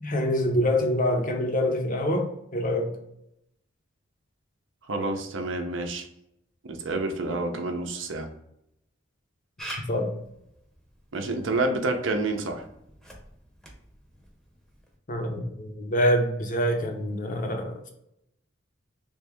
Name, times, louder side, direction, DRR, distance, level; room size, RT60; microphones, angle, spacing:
voice 1, 0.0-3.0 7.4-7.7 9.9-10.1 15.1-17.9, left 1 dB, 45° left, 3 dB, 0.7 m, -26 dB
voice 2, 4.9-6.1 6.6-8.3 11.1-12.6, right 2 dB, 70° right, 4 dB, 0.6 m, -28 dB
Camera, 9.6-15.0, right 1 dB, ahead, 0.8 m, -46 dB
3.4 x 2.7 x 3.4 m, 0.78 s
head